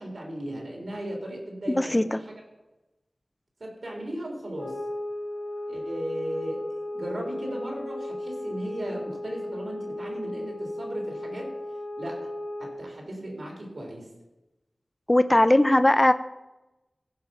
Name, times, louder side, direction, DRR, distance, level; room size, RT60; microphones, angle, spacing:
voice 1, 0.0-2.3 3.6-4.8 5.7-11.5 12.0-12.3 12.6-14.1, right 1 dB, 75° right, 0 dB, 3.4 m, -36 dB
voice 2, 1.8-2.2 15.1-16.1, left 1 dB, 25° left, 12 dB, 0.4 m, -19 dB
sound 1, 4.6-12.9, left 1 dB, 75° left, 2.4 m, -35 dB
15.0 x 5.6 x 5.7 m, 1.0 s
wide cardioid pair, 65°, 0 cm